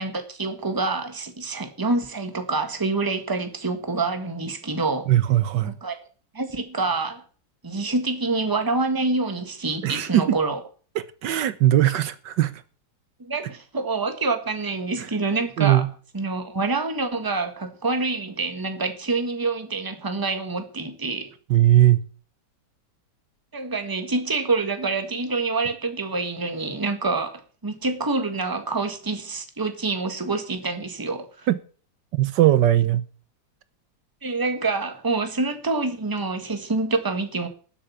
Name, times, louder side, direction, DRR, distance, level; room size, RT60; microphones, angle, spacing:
voice 1, 0.0-5.1 5.6-6.0 6.3-7.2 7.6-10.6 13.2-15.8 16.1-21.3 23.5-31.5 34.2-37.5, right 3 dB, 15° right, 1.4 m, -26 dB
voice 2, 5.1-5.7 9.8-10.4 10.9-12.6 15.0-15.1 15.6-15.9 21.5-22.0 31.5-31.6 32.1-33.0, right 13 dB, 75° right, 1.5 m, -19 dB
12.0 x 7.7 x 7.1 m
omnidirectional pair, 1.9 m